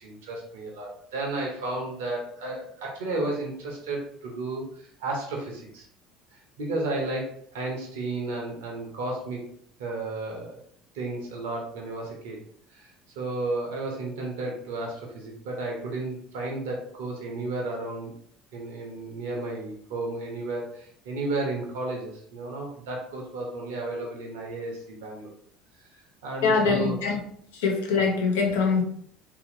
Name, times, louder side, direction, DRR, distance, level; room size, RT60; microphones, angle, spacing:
voice 1, 0.0-5.9 6.6-9.4 9.8-10.6 10.9-12.4 12.7-12.9 13.2-18.1 18.5-25.3 26.0-27.0, right 2 dB, 70° right, 0.7 m, -33 dB
voice 2, 26.4-27.2 27.5-28.8, left 5 dB, 75° left, 0.6 m, -23 dB
2.8 x 2.7 x 2.6 m
figure-of-eight pair, 65°, 0 cm